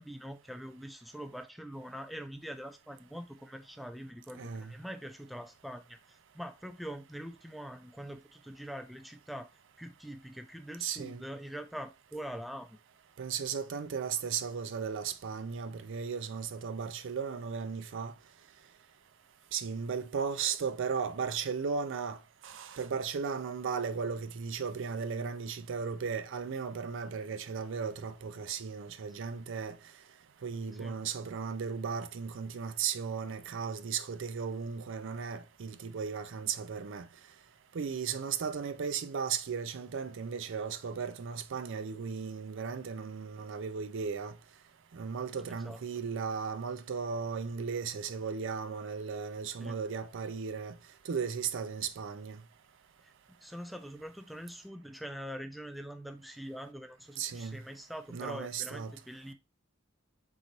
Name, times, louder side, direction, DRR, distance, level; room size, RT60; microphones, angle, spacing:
voice 1, 0.0-9.5 9.8-12.8 30.8-31.0 45.5-45.8 49.6-49.8 53.0-53.1 53.4-59.3, equal, ahead, 0.3 m, -44 dB
voice 2, 4.4-4.7 10.8-11.2 13.2-18.1 19.5-29.8 30.4-37.1 37.7-44.3 44.9-50.8 51.1-52.4 57.2-57.6 58.1-58.9, right 6 dB, 65° right, 0.4 m, -36 dB
3.8 x 3.1 x 3.9 m
head